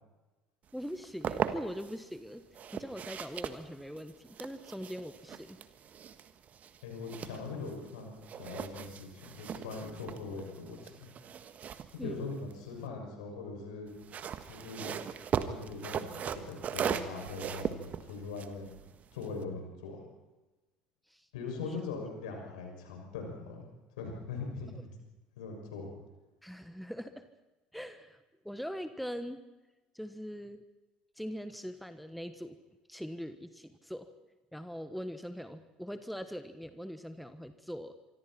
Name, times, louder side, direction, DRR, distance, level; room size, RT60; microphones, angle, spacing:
voice 1, 0.7-2.4 2.7-5.6 12.0-12.3 21.1-21.3 21.6-21.7 24.8-24.9 26.4-27.3 27.7-28.2 28.4-29.4 29.9-30.6 31.2-32.6 32.9-34.1 34.5-37.9, equal, ahead, 10 dB, 1.3 m, -42 dB
sound 1, 0.8-2.0 2.5-7.9 8.2-12.9 13.9-19.4, right 8 dB, 40° right, 1.4 m, -39 dB
voice 2, 6.8-11.1 11.9-13.9 14.4-15.0 15.4-18.7 19.1-20.0 21.3-23.6 24.0-24.9 25.4-25.9, left 4 dB, 70° left, 2 dB, 6.5 m, -41 dB
25.5 x 24.5 x 4.4 m, 1.1 s
figure-of-eight pair, 60°, 4 cm